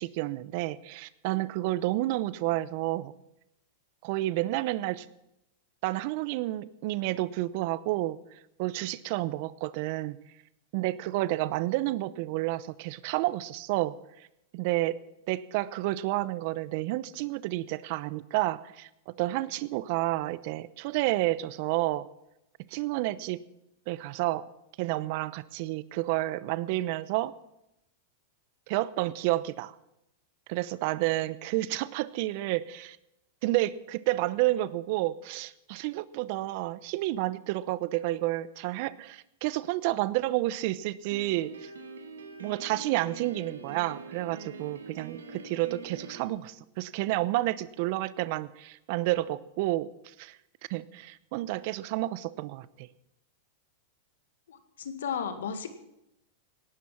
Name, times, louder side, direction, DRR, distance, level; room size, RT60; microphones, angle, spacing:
voice 1, 0.0-3.1 4.0-5.1 5.8-8.2 8.6-10.2 10.7-13.9 14.5-15.0 15.3-22.1 22.7-23.4 23.9-24.4 24.8-27.3 28.7-29.7 30.5-33.0 33.4-41.7 42.4-49.9 50.2-50.4 50.7-52.9, right 17 dB, 55° right, 18 dB, 0.8 m, -30 dB
Piano, 41.1-46.2, right 3 dB, 90° right, 2.1 m, -44 dB
voice 2, 54.5-55.7, left 7 dB, 80° left, 9 dB, 2.0 m, -34 dB
18.0 x 11.5 x 6.0 m, 0.87 s
hypercardioid pair, 110°, 0 cm